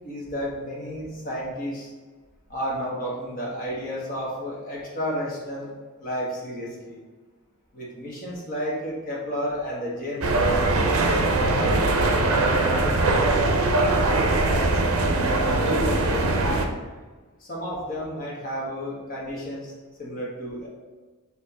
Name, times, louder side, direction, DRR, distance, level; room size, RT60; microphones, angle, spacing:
voice 1, 0.0-1.9 2.5-5.7 6.0-7.0 7.7-10.6 11.2-13.6 13.9-14.7 15.0-16.3 17.4-19.7 20.0-20.7, equal, 40° left, -4 dB, 1.1 m, -31 dB
sound 1, 10.2-16.7, right 2 dB, 65° right, 0.5 m, -21 dB
4.2 x 2.9 x 4.0 m, 1.3 s
head